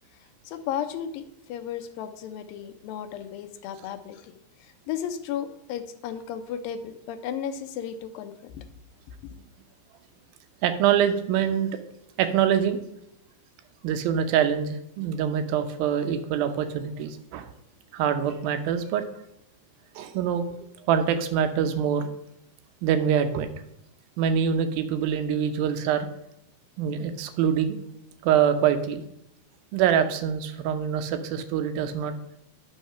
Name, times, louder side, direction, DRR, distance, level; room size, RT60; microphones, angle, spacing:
voice 1, 0.4-8.6, left 9 dB, 80° left, 8 dB, 2.4 m, -34 dB
voice 2, 10.6-11.8 12.2-12.8 13.8-17.5 17.9-19.0 20.0-20.4 20.9-22.1 22.8-23.5 24.2-26.1 26.8-27.8 28.2-29.0 29.7-32.2, right 8 dB, 90° right, 8 dB, 2.6 m, -24 dB
10.0 x 5.7 x 5.6 m, 0.80 s
omnidirectional pair, 4.1 m